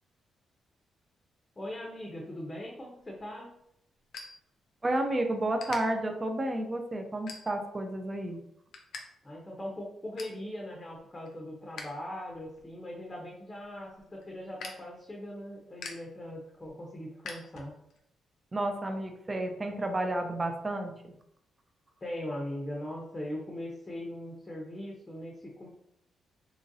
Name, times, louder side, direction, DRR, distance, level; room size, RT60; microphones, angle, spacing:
voice 1, 1.6-3.5 9.2-17.7 22.0-25.7, left 1 dB, 20° left, -2 dB, 0.6 m, -40 dB
sound 1, 3.0-5.1 5.4-5.8 6.4-6.6 7.1-7.8 8.2-9.0 9.3-9.4 9.8-10.4 10.9-11.9 12.2-18.0, left 4 dB, 75° left, 0.5 m, -46 dB
voice 2, 4.8-8.4 18.5-21.1, right 1 dB, 25° right, 4 dB, 0.5 m, -31 dB
3.0 x 2.5 x 2.6 m, 0.74 s
cardioid pair, 80°, 0 cm